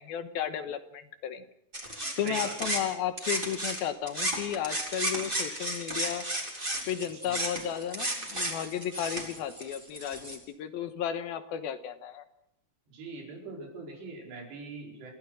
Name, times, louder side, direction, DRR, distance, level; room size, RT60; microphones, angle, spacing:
voice 1, 0.0-1.4 2.2-6.3 6.9-12.2, left 9 dB, 70° left, 9 dB, 2.8 m, -34 dB
sound 1, 1.7-3.8 4.1-10.4, right 1 dB, 15° right, 3.6 m, -33 dB
voice 2, 2.3-2.7 7.2-7.3 12.9-15.1, right 3 dB, 90° right, 0 dB, 6.9 m, -41 dB
29.0 x 16.0 x 6.4 m, 0.81 s
omnidirectional pair, 4.7 m